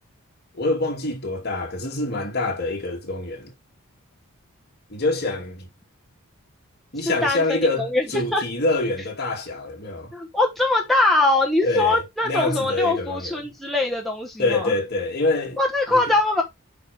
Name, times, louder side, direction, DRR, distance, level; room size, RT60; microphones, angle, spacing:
voice 1, 0.5-3.5 4.9-5.7 6.9-10.1 11.6-13.4 14.4-15.6 15.9-16.0, left 2 dB, 45° left, 2.6 m, -25 dB
voice 2, 7.0-8.4 10.1-14.7 15.6-16.4, left 2 dB, ahead, 1.2 m, -22 dB
8.6 x 5.0 x 3.5 m
head